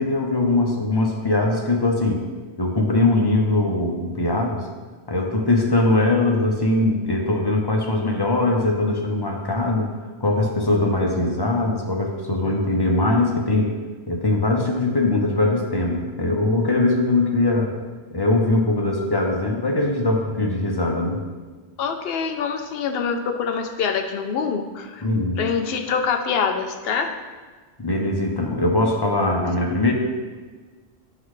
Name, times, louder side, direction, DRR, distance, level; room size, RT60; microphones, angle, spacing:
voice 1, 0.0-2.2 2.6-4.7 5.1-9.9 10.2-13.7 14.1-17.7 18.1-21.2 25.0-25.4 27.8-29.9, left 2 dB, 25° left, 0 dB, 0.9 m, -21 dB
voice 2, 21.8-25.0 25.4-27.1, left 6 dB, 70° left, 5 dB, 0.9 m, -25 dB
11.5 x 3.9 x 3.2 m, 1.4 s
omnidirectional pair, 1.1 m